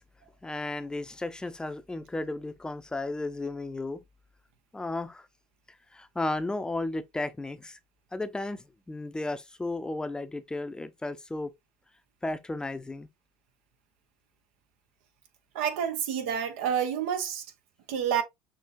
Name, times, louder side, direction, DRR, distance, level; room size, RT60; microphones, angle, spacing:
voice 1, 0.4-4.0 4.7-5.3 5.9-7.8 8.1-11.5 12.2-13.1, left 2 dB, 10° left, 0.6 m, -34 dB
voice 2, 15.5-17.4 17.9-18.2, right 8 dB, 80° right, 1.0 m, -28 dB
6.1 x 2.7 x 2.6 m
supercardioid pair, 90°, 6 cm